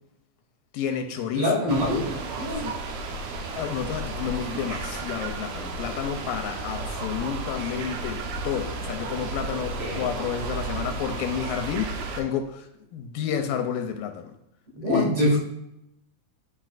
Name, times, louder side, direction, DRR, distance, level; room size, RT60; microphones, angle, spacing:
voice 1, 0.7-1.6 2.5-2.8 3.6-14.3 14.8-15.1, left 8 dB, 85° left, 6 dB, 2.2 m, -30 dB
voice 2, 1.3-2.6 9.5-10.0 14.7-15.4, left 1 dB, 50° right, -5 dB, 2.3 m, -25 dB
sound 1, 1.7-12.2, right 3 dB, 75° right, 2.0 m, -33 dB
11.5 x 4.4 x 2.4 m, 0.81 s
omnidirectional pair, 4.1 m